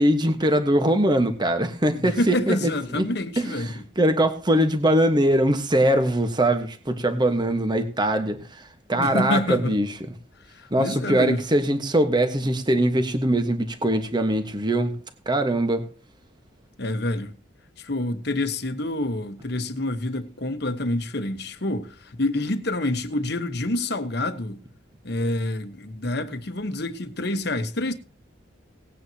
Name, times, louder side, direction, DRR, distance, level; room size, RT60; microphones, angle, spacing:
voice 1, 0.0-2.6 2.9-3.1 3.4-9.9 10.7-14.9 15.3-15.8, right 1 dB, 20° right, 1.3 m, -22 dB
voice 2, 1.9-3.7 8.9-9.8 10.5-11.4 16.8-17.3 17.8-24.6 25.0-27.9, left 1 dB, 55° left, 1.2 m, -27 dB
19.0 x 9.2 x 2.9 m
head